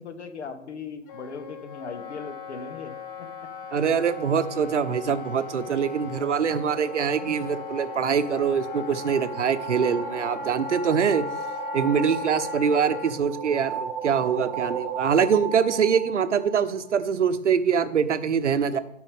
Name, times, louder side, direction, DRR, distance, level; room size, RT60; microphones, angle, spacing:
voice 1, 0.0-3.5, left 5 dB, 60° left, 9 dB, 1.3 m, -39 dB
Wind instrument woodwind instrument, 1.1-13.1, left 6 dB, 45° left, 0.9 m, -38 dB
voice 2, 3.7-11.3 11.7-18.8, right 7 dB, 65° right, 12 dB, 0.8 m, -24 dB
sound 1, 5.5-17.0, right 7 dB, 35° right, 0.7 m, -37 dB
13.0 x 5.2 x 3.6 m, 0.78 s
figure-of-eight pair, 125°, 38 cm